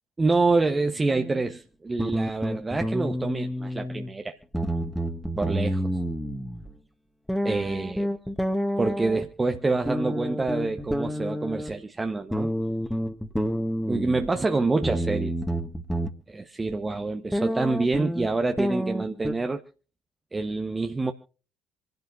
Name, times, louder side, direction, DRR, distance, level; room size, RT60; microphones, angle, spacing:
voice 1, 0.2-4.4 5.4-5.8 7.4-8.1 8.8-12.5 13.9-15.3 16.3-19.6 20.3-21.1, right 3 dB, 20° right, 1.1 m, -26 dB
sound 1, 1.1-1.4 2.0-4.1 4.4-6.7 7.3-9.3 9.9-11.7 12.3-14.3 14.8-16.1 16.7-16.8 17.3-19.3, equal, ahead, 1.8 m, -29 dB
27.5 x 12.0 x 2.6 m
figure-of-eight pair, 50°, 0 cm